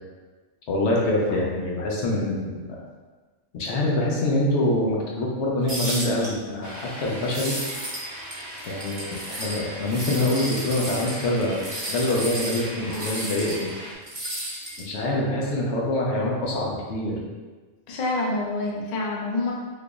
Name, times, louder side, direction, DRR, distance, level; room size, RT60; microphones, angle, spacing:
voice 1, 0.7-2.8 3.5-7.5 8.6-11.6 11.9-13.7 14.8-17.2, left 1 dB, 75° left, -3 dB, 1.0 m, -25 dB
sound 1, 5.7-6.3 7.2-8.0 8.3-9.6 9.9-13.7 14.1-14.9, right 1 dB, 45° right, 1.0 m, -33 dB
sound 2, 6.6-13.9, equal, 25° right, 0.4 m, -39 dB
voice 2, 17.9-19.5, left 2 dB, 50° left, -3 dB, 0.6 m, -27 dB
3.7 x 2.9 x 2.4 m, 1.3 s
omnidirectional pair, 1.2 m